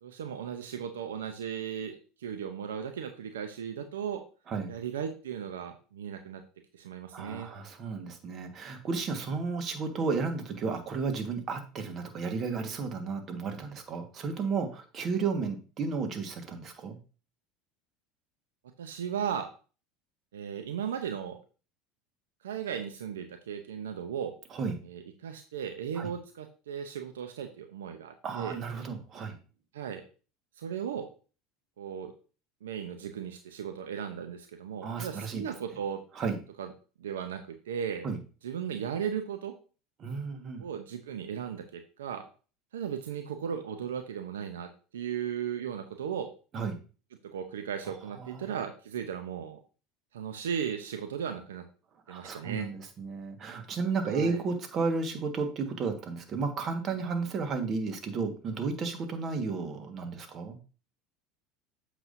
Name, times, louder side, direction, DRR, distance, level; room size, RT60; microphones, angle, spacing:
voice 1, 0.0-4.2 4.7-6.4 6.7-7.5 18.8-19.5 20.3-21.4 22.4-24.3 24.8-28.6 29.7-30.0 30.6-31.1 31.8-32.1 32.6-36.0 36.6-36.7 37.0-38.1 38.4-39.5 40.6-42.2 42.7-46.3 47.3-49.6 50.1-51.6 52.1-52.7 54.1-54.4, right 8 dB, 85° right, 7 dB, 0.6 m, -36 dB
voice 2, 7.1-17.0 24.5-24.7 26.0-26.1 28.2-29.4 34.8-35.4 36.1-36.4 38.0-38.2 40.0-40.7 46.5-46.8 48.2-48.4 52.1-60.6, right 4 dB, 45° right, 6 dB, 1.5 m, -33 dB
8.1 x 5.9 x 2.6 m, 0.36 s
hypercardioid pair, 80°, 0 cm